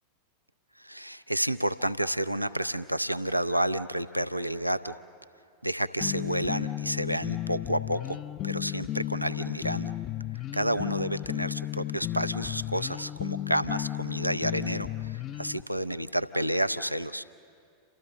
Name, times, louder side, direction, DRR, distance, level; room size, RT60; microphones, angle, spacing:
voice 1, 0.8-5.0 5.6-8.2 8.4-9.9 10.5-17.2, right 1 dB, 90° right, 11 dB, 0.6 m, -30 dB
sound 1, 6.0-15.6, left 14 dB, 35° left, 0.5 m, -34 dB
29.0 x 26.5 x 6.6 m, 2.3 s
figure-of-eight pair, 90°, 0 cm